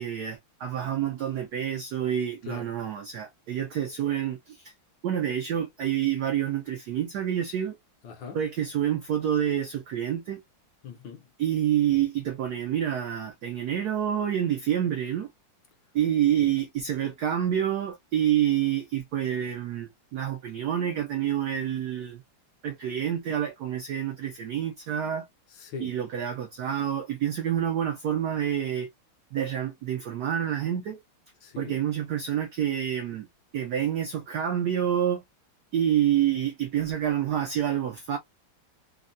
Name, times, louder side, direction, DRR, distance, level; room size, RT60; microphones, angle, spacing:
voice 1, 0.0-4.7 5.0-7.8 8.3-10.4 11.4-15.3 15.9-22.2 22.6-25.3 25.8-28.9 29.3-31.0 31.6-33.3 33.5-35.2 35.7-38.2, right 10 dB, 80° right, 0.9 m, -28 dB
voice 2, 8.0-8.4 10.8-11.3 16.4-16.5 25.5-25.9 31.4-31.8, left 5 dB, 70° left, 1.2 m, -40 dB
3.6 x 2.1 x 2.4 m
omnidirectional pair, 2.4 m